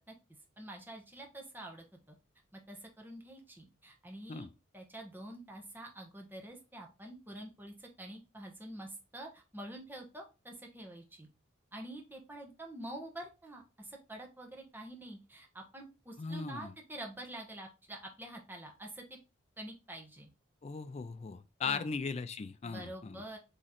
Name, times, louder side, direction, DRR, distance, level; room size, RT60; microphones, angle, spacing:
voice 1, 0.6-2.2 2.5-4.5 4.7-11.3 11.7-19.2 19.6-20.3 21.6-22.0 22.6-23.4, right 1 dB, 10° right, 0.9 m, -47 dB
voice 2, 16.2-16.7 20.6-23.2, left 5 dB, 30° left, 0.3 m, -38 dB
3.7 x 3.2 x 4.1 m
head